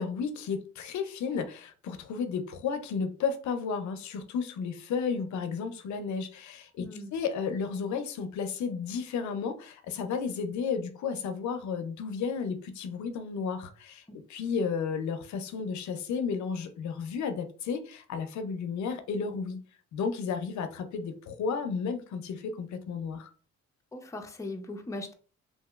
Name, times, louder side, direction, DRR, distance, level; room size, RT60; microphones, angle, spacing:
voice 1, 0.0-14.0 14.3-19.6 19.9-23.3, left 5 dB, 70° left, 0.5 m, -33 dB
voice 2, 6.8-7.1 23.9-25.1, left 2 dB, 10° left, 0.5 m, -39 dB
2.9 x 2.8 x 2.3 m
cardioid pair, 90°, 30 cm